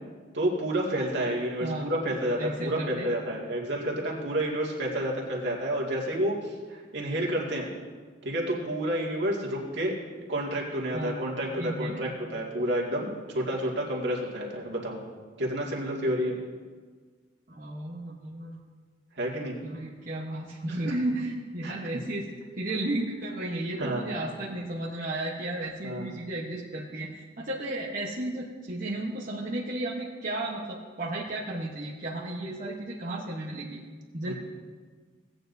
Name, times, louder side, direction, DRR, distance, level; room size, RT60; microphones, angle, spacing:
voice 1, 0.3-7.7 8.2-10.0 10.3-15.0 15.4-16.4 19.2-19.6 20.7-20.8 21.6-21.8 23.8-24.2 25.8-26.1 34.3-34.4, right 1 dB, 65° right, -3 dB, 2.1 m, -30 dB
voice 2, 1.6-1.9 2.4-3.1 10.9-11.2 11.6-12.1 17.5-18.6 19.6-22.3 22.6-27.1 27.4-33.8 34.1-34.3, right 1 dB, 45° right, -5 dB, 1.1 m, -33 dB
17.5 x 9.0 x 2.7 m, 1.5 s
head